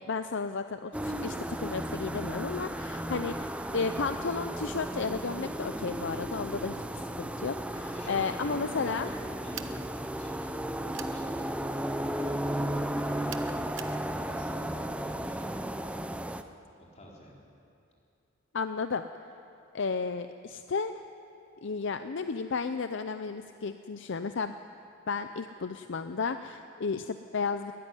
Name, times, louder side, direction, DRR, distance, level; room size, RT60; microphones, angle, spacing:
voice 1, 0.1-6.8 7.2-9.1 18.5-19.0 19.7-20.9 21.6-24.6 25.1-27.7, left 4 dB, 65° left, 9 dB, 0.6 m, -33 dB
sound 1, 0.9-16.4, right 1 dB, 5° right, 0.6 m, -34 dB
voice 2, 7.9-9.2 9.4-11.6 12.0-13.6 14.0-15.8 16.9-17.4, equal, 35° left, -3 dB, 4.2 m, -50 dB
sound 2, 9.5-9.8 10.9-11.2 13.3-14.0, right 10 dB, 65° right, 1.0 m, -42 dB
20.5 x 13.5 x 10.0 m, 2.7 s
head